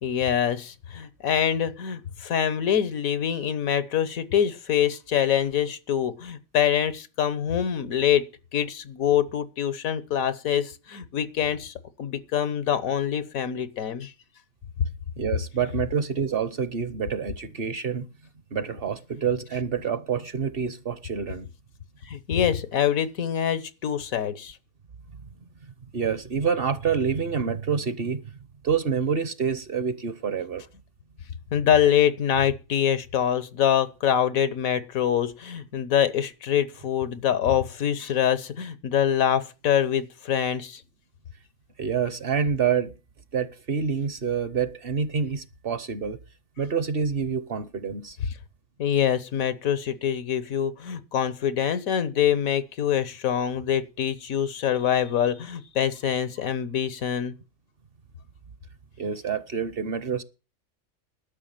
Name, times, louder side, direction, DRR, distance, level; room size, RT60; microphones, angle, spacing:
voice 1, 0.0-8.2 8.5-11.7 12.0-14.1 22.1-24.6 31.5-40.8 48.8-57.3, left 9 dB, 85° left, 1.4 m, -25 dB
voice 2, 15.2-18.1 18.5-21.5 25.9-28.2 28.6-30.6 41.8-42.9 43.3-46.2 46.6-48.2 59.0-60.2, right 6 dB, 50° right, 0.9 m, -27 dB
12.0 x 5.9 x 8.9 m
omnidirectional pair, 1.4 m